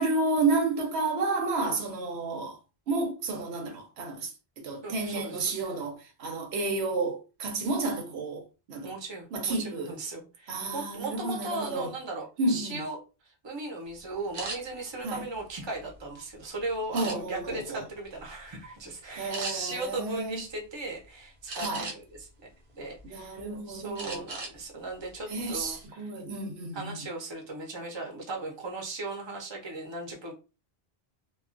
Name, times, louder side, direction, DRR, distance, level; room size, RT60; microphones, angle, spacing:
voice 1, 0.0-2.6 2.9-8.9 9.3-9.9 10.5-11.9 12.4-12.8 15.0-15.3 16.9-17.8 19.1-20.4 21.6-21.9 23.0-24.3 25.3-27.0, right 3 dB, 90° right, 0.9 m, -31 dB
voice 2, 4.8-5.5 8.8-13.0 13.2-23.3 23.7-26.1 26.7-30.3, right 2 dB, 30° right, 0.7 m, -37 dB
sound 1, 14.3-14.6 15.2-16.2 16.9-17.5 18.0-18.3 18.6-18.8 19.3-19.5 21.5-22.2 22.7-23.4 24.0-24.6 24.9-25.1 25.5-25.9, right 3 dB, 65° right, 0.8 m, -38 dB
2.3 x 2.3 x 2.4 m
omnidirectional pair, 1.0 m